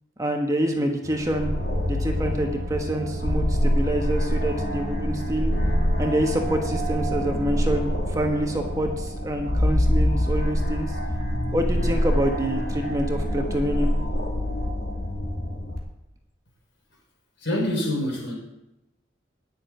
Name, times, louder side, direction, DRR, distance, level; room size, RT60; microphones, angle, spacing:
voice 1, 0.2-1.5 1.8-5.5 6.0-11.0 11.5-13.9, right 1 dB, 15° right, 1.2 m, -26 dB
sound 1, 1.0-9.0, right 1 dB, 45° right, 1.6 m, -36 dB
sound 2, 1.2-15.8, equal, 55° left, 2.3 m, -25 dB
voice 2, 17.4-18.3, left 1 dB, 70° left, 5.3 m, -26 dB
10.5 x 6.7 x 9.3 m
head